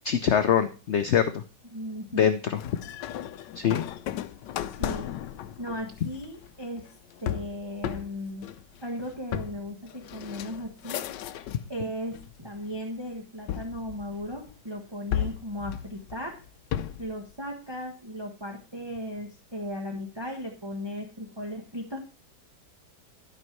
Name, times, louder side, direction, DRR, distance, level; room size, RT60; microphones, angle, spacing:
voice 1, 0.0-1.4 2.2-2.6 3.6-3.8, left 8 dB, 65° left, 10 dB, 0.7 m, -23 dB
voice 2, 1.7-2.3 4.7-5.1 5.6-6.9 7.2-8.5 8.8-11.1 11.7-16.4 17.0-22.0, equal, 15° right, 1 dB, 1.2 m, -36 dB
sound 1, 2.6-11.7 12.1-12.8 13.5-14.6 15.1-17.2, left 11 dB, 85° left, 1.3 m, -35 dB
12.5 x 5.4 x 4.6 m, 0.34 s
omnidirectional pair, 1.8 m